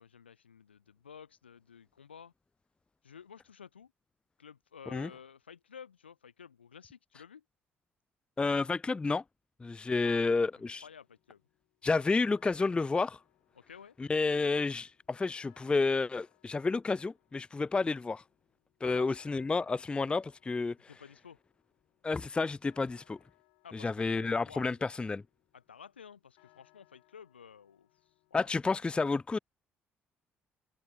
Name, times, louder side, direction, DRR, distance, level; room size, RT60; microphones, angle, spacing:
voice 1, 0.0-2.3 3.0-3.9 4.4-7.4 9.9-10.3 10.8-11.4 13.5-13.9 18.8-19.3 20.9-21.4 23.6-24.8 25.5-27.9 28.3-28.5, left 7 dB, 85° left, 1.9 m, -52 dB
voice 2, 8.4-9.2 9.6-10.8 11.8-13.2 14.0-18.2 18.8-20.8 22.0-23.2 23.7-25.2 28.3-29.4, left 3 dB, 15° left, 0.3 m, -30 dB
sound 1, 9.8-28.5, left 36 dB, 70° left, 4.1 m, -70 dB
figure-of-eight pair, 50°, 6 cm